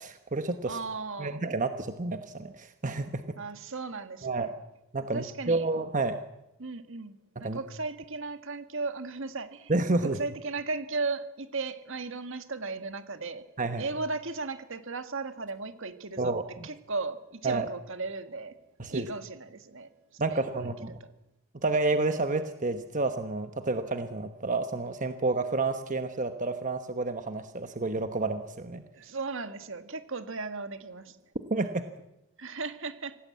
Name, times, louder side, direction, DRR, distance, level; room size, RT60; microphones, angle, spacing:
voice 1, 0.0-0.8 1.2-3.2 4.2-4.5 4.9-6.2 7.4-7.6 9.7-10.2 13.6-13.8 16.2-16.4 17.4-17.7 18.8-19.1 20.2-21.0 21.6-28.8 31.5-31.9, right 3 dB, 35° right, 8 dB, 1.1 m, -30 dB
voice 2, 0.6-1.4 3.4-4.5 5.1-5.7 6.6-9.7 10.0-13.4 13.8-16.3 16.6-18.6 18.9-19.9 20.3-21.1 28.9-31.2 32.4-33.2, right 3 dB, 65° right, 9 dB, 1.8 m, -36 dB
26.0 x 17.5 x 8.6 m, 0.92 s
head